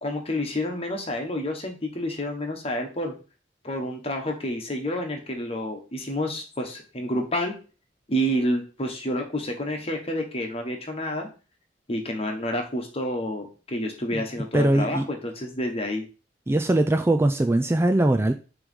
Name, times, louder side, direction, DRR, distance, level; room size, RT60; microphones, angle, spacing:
voice 1, 0.0-3.1 3.6-7.5 8.1-11.3 11.9-16.0, equal, 35° left, 1.4 m, -29 dB
voice 2, 14.5-15.1 16.5-18.3, right 1 dB, 15° right, 0.4 m, -21 dB
6.8 x 3.2 x 5.3 m
head